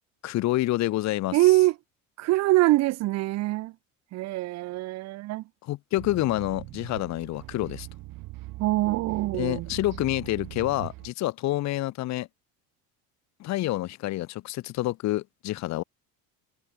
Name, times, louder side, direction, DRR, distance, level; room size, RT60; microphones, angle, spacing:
voice 1, 0.2-1.4 5.6-7.9 9.3-12.3 13.4-15.8, left 16 dB, 45° left, 1.2 m, -28 dB
voice 2, 1.3-1.7 2.2-3.7 4.1-5.4 8.6-9.7, right 18 dB, 45° right, 0.7 m, -24 dB
sound 1, 6.0-11.1, right 19 dB, 60° right, 3.7 m, -41 dB
cardioid pair, 145°, 37 cm